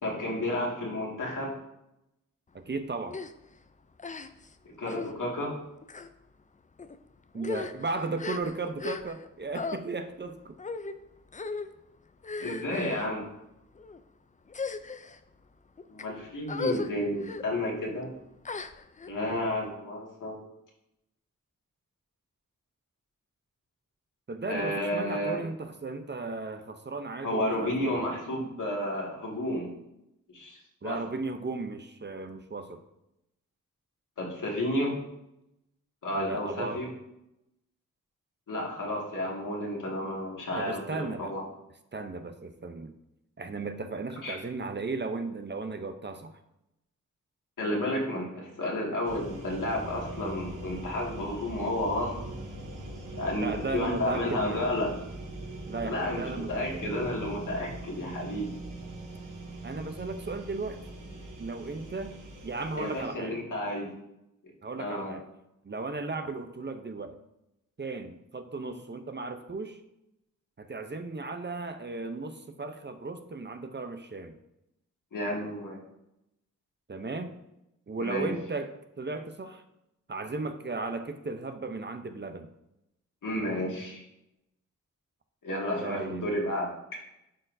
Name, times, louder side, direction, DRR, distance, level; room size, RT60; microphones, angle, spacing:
voice 1, 0.0-1.5 4.7-5.5 12.4-13.2 15.9-18.1 19.1-20.4 24.5-25.4 27.2-29.7 30.3-31.0 34.2-35.0 36.0-36.9 38.5-41.4 44.2-44.4 47.6-52.1 53.1-54.9 55.8-58.5 62.8-63.9 64.8-65.1 75.1-75.8 78.0-78.3 83.2-84.0 85.4-87.0, left 1 dB, 75° left, -2 dB, 2.0 m, -31 dB
voice 2, 2.7-3.2 7.3-10.6 24.3-28.0 30.8-32.8 36.1-36.8 40.6-41.4 41.9-42.9 43.4-46.3 53.3-54.8 55.7-57.1 59.6-60.8 61.4-62.2 62.4-63.4 64.6-65.2 65.6-67.2 67.8-69.8 70.6-74.4 76.9-77.4 77.9-79.6 80.1-82.5 85.8-86.3, right 3 dB, 35° right, 7 dB, 0.7 m, -36 dB
sound 1, 3.1-3.3 4.0-4.5 4.8-5.1 5.8-6.1 6.8-7.0 7.3-9.3 9.5-9.8 10.6-10.9 11.3-11.7 12.2-13.1 13.7-14.0 14.5-15.2 15.8-16.0 16.5-16.9 17.2-17.4 18.4-19.1, left 4 dB, 25° left, 0.4 m, -36 dB
sound 2, 49.0-63.0, right 2 dB, 75° right, 1.9 m, -41 dB
11.5 x 4.3 x 2.7 m, 0.86 s
cardioid pair, 70°, 32 cm